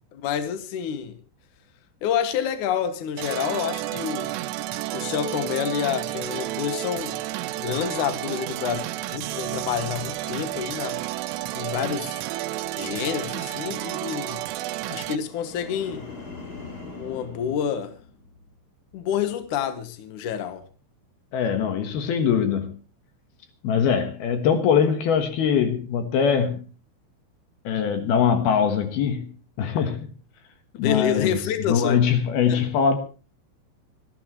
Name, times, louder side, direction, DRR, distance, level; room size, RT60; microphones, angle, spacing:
voice 1, 0.1-1.2 2.0-4.3 4.9-7.2 7.6-8.8 9.1-11.0 11.5-12.2 12.8-14.4 14.9-16.1 17.0-17.9 18.9-20.6 30.8-32.0 32.5-32.6, left 8 dB, 85° left, 1.7 m, -28 dB
sound 1, 3.2-15.2, right 15 dB, 80° right, 3.2 m, -31 dB
sound 2, 15.1-18.5 18.9-19.3, left 3 dB, 20° left, 3.4 m, -42 dB
voice 2, 21.3-22.8 23.6-26.6 27.6-29.3 29.6-30.1 30.8-33.0, left 7 dB, 65° left, 2.7 m, -22 dB
25.0 x 12.5 x 3.1 m
omnidirectional pair, 5.7 m